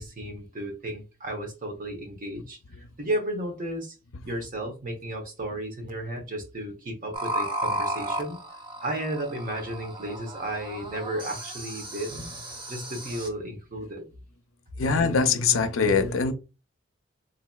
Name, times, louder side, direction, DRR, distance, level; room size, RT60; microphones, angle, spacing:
voice 1, 0.0-2.6 3.0-4.0 4.2-8.4 8.8-12.3 12.7-14.0, right 1 dB, 45° right, 1.0 m, -33 dB
sound 1, 7.1-13.3, right 1 dB, 25° right, 0.7 m, -34 dB
voice 2, 14.8-16.3, left 5 dB, 70° left, 0.5 m, -22 dB
3.9 x 2.9 x 2.3 m
head